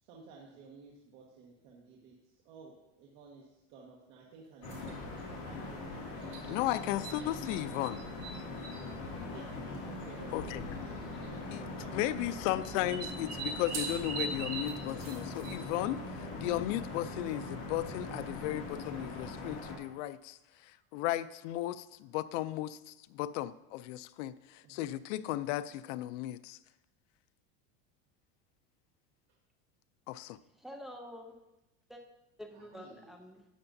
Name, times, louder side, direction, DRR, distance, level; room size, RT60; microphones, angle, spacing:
voice 1, 0.0-6.7 9.3-12.4 24.6-24.8 32.5-33.1, right 4 dB, 65° right, -3 dB, 1.5 m, -54 dB
sound 1, 4.6-19.8, left 2 dB, 60° left, 2.3 m, -41 dB
sound 2, 4.6-5.0 6.3-7.6 7.8-8.8 9.7-9.8 10.0-10.1 11.1-11.4 12.6-15.8, right 4 dB, 45° right, 1.7 m, -41 dB
sound 3, 4.8-20.8 21.1-22.0 22.2-22.6, right 2 dB, 30° right, 2.9 m, -59 dB
voice 2, 6.5-8.0 10.3-10.6 11.5-11.6 11.9-20.4 20.6-26.6 30.1-30.4, left 14 dB, 80° left, 15 dB, 0.5 m, -35 dB
voice 3, 30.5-31.4 31.9-32.0 32.4-33.4, equal, ahead, 2 dB, 0.5 m, -47 dB
11.5 x 7.8 x 2.7 m, 0.94 s
cardioid pair, 165°, 37 cm